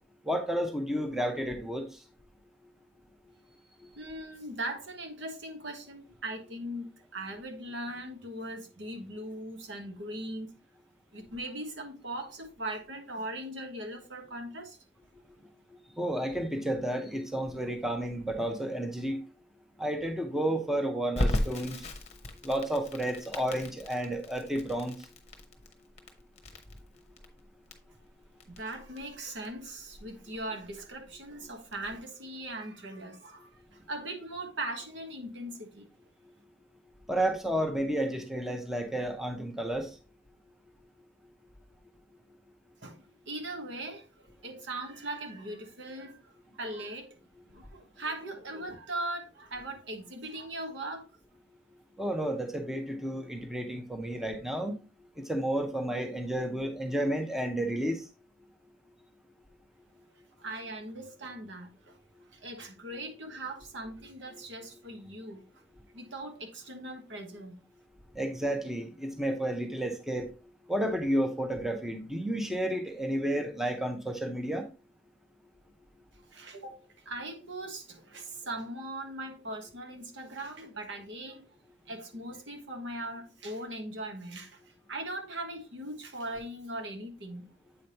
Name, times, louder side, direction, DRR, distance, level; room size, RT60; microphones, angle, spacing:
voice 1, 0.3-1.9 16.0-19.2 19.8-21.9 22.4-25.0 37.1-39.9 52.0-54.8 55.2-58.0 68.1-70.3 70.7-74.7, right 1 dB, ahead, 0.7 m, -31 dB
voice 2, 3.9-10.5 11.1-14.8 28.5-35.9 42.8-47.2 47.5-51.1 60.4-62.0 62.3-65.4 65.9-67.6 76.3-76.8 77.0-81.5 81.9-87.5, right 1 dB, 80° right, 1.4 m, -40 dB
Crackle, 21.1-31.9, left 1 dB, 35° left, 0.9 m, -37 dB
7.8 x 5.1 x 2.9 m
head